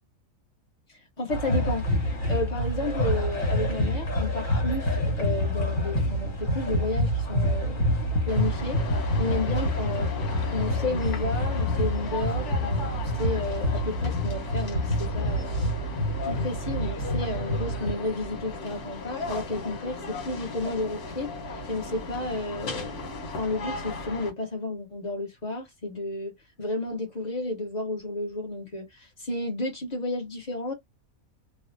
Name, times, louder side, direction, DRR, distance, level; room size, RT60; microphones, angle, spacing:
voice 1, 1.2-1.8 2.3-7.8 8.2-8.8 9.2-10.1 10.5-15.5 16.2-26.3 26.6-30.7, left 2 dB, 35° left, 0.9 m, -32 dB
sound 1, 1.3-17.9, equal, 65° left, 1.6 m, -27 dB
sound 2, 8.3-24.3, left 2 dB, 85° left, 1.5 m, -36 dB
3.2 x 2.0 x 2.5 m
omnidirectional pair, 1.5 m